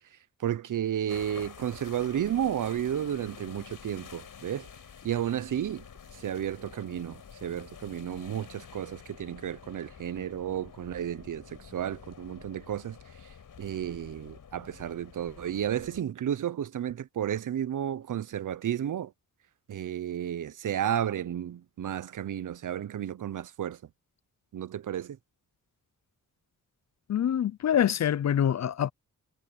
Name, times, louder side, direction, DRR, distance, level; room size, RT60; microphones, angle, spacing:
voice 1, 0.1-4.7 5.0-5.9 6.1-19.1 19.7-23.8 24.5-25.2, right 10 dB, 65° right, 0.7 m, -32 dB
sound 1, 1.1-16.0, left 7 dB, 75° left, 5.3 m, -49 dB
voice 2, 27.1-28.9, left 9 dB, 55° left, 0.5 m, -25 dB
wide cardioid pair, 110°, 33 cm